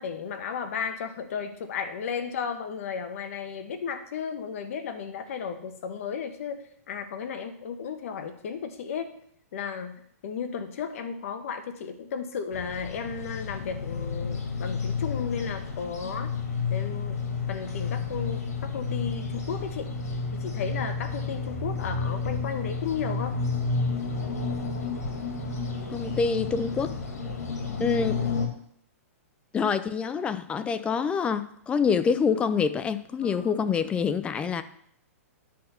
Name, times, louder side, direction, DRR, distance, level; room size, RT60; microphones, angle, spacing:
voice 1, 0.0-9.1 9.5-16.3 16.7-17.1 17.5-19.9 20.3-23.4 33.2-33.7, left 6 dB, 60° left, 8 dB, 1.3 m, -34 dB
sound 1, 12.5-28.5, left 4 dB, 80° left, 2.3 m, -31 dB
voice 2, 25.9-26.9 27.8-28.2 29.5-34.6, left 6 dB, 15° left, 12 dB, 0.4 m, -26 dB
10.0 x 3.9 x 6.9 m, 0.66 s
hypercardioid pair, 145°, 8 cm